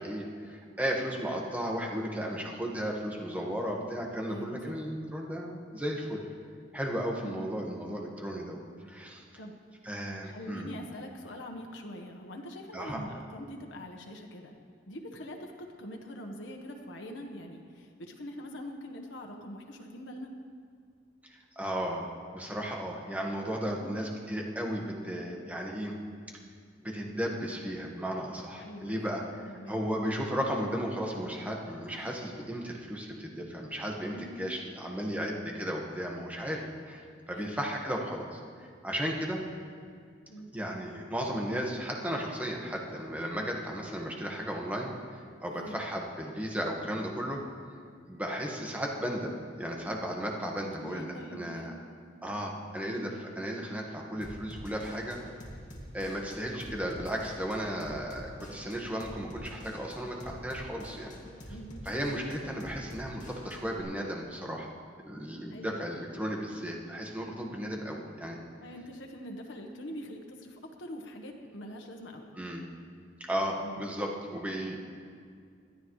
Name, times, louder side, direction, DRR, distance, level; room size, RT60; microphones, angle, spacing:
voice 1, 0.0-6.2 6.7-9.2 9.8-10.7 12.7-13.0 21.3-25.9 26.8-39.4 40.5-47.4 48.1-49.3 49.6-51.7 52.2-55.2 55.9-61.1 61.8-64.7 65.0-68.4 72.4-72.6 73.3-74.8, equal, 10° right, -1 dB, 1.5 m, -35 dB
voice 2, 4.3-4.8 7.2-7.5 9.4-9.5 10.2-14.6 14.9-20.3 23.7-23.9 28.6-29.8 31.9-32.1 34.1-34.4 37.3-37.6 40.3-40.5 45.5-45.8 50.8-51.7 61.5-61.8 65.5-65.8 68.6-72.2 73.6-73.9, equal, 90° left, 2 dB, 1.3 m, -44 dB
Drum kit / Drum, 54.2-63.8, equal, 40° left, 2.2 m, -46 dB
21.0 x 12.5 x 3.2 m, 2.2 s
head